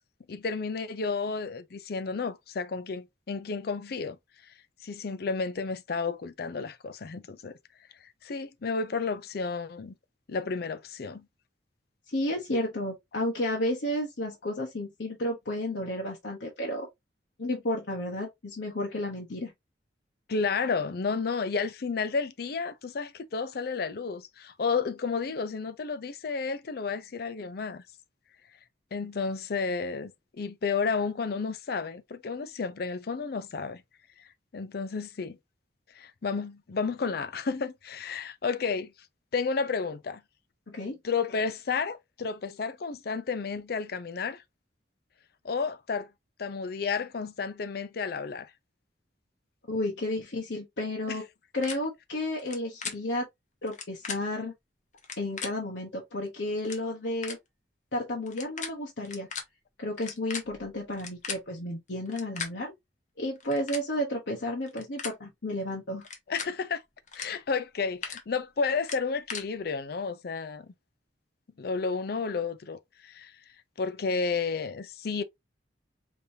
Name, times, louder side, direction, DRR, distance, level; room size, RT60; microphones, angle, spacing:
voice 1, 0.3-4.2 4.8-7.6 8.2-9.9 10.3-11.2 20.3-27.8 28.9-30.1 30.4-33.8 34.5-35.4 36.0-38.9 39.3-40.2 41.0-44.4 45.4-46.1 46.4-48.5 51.1-51.2 66.3-66.8 67.1-70.7 71.6-73.3 73.8-75.2, left 5 dB, 60° left, 0.5 m, -31 dB
voice 2, 12.1-16.9 17.4-19.5 40.7-41.0 49.7-51.2 51.5-53.3 53.6-54.5 55.2-57.4 57.9-59.3 59.8-62.7 63.2-66.1, left 1 dB, 80° left, 1.0 m, -32 dB
sound 1, 51.6-51.7 52.4-52.6 52.8-52.9 53.7-54.2 55.0-55.5 56.3-56.4 56.6-56.8 57.2-57.4 58.3-58.7 59.0-59.4 60.0-61.4 62.1-62.5 63.4-63.8 64.6-65.1 66.0-66.5 67.1-67.3 67.6-68.2 68.8-69.4, left 6 dB, 45° left, 1.0 m, -37 dB
5.2 x 2.7 x 2.7 m
head